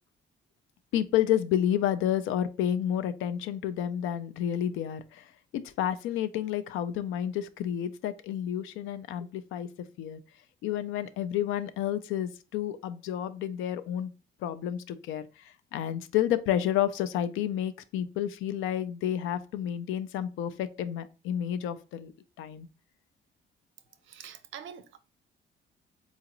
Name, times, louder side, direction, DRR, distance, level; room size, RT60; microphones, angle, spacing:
voice 1, 0.9-5.2 5.5-9.7 10.0-10.2 10.6-14.1 14.4-22.1 22.4-22.7, left 10 dB, 85° left, 0.4 m, -30 dB
voice 2, 24.0-25.0, right 8 dB, 75° right, 0.5 m, -45 dB
3.9 x 2.4 x 2.9 m
cardioid pair, 90°, 20 cm